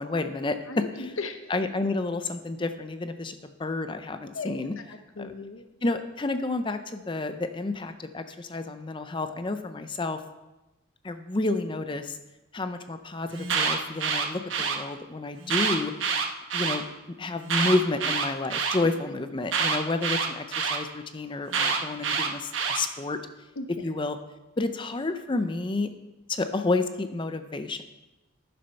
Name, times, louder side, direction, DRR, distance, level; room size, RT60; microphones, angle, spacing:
voice 1, 0.0-0.6 1.0-1.1 1.5-4.7 5.2-5.3 5.8-10.2 11.0-12.2 12.5-15.9 16.5-16.8 17.2-23.2 23.8-24.2 24.6-25.9 26.3-27.8, left 2 dB, 25° left, 9 dB, 0.5 m, -30 dB
voice 2, 0.7-1.4 4.3-4.6 4.9-5.7 23.6-23.7, left 3 dB, 80° left, 7 dB, 0.8 m, -36 dB
Alarm, 13.3-14.8 15.4-16.8 17.4-18.8 19.5-20.8 21.5-22.8, right 5 dB, 70° right, 1.1 m, -26 dB
11.0 x 6.9 x 5.5 m, 1.0 s
head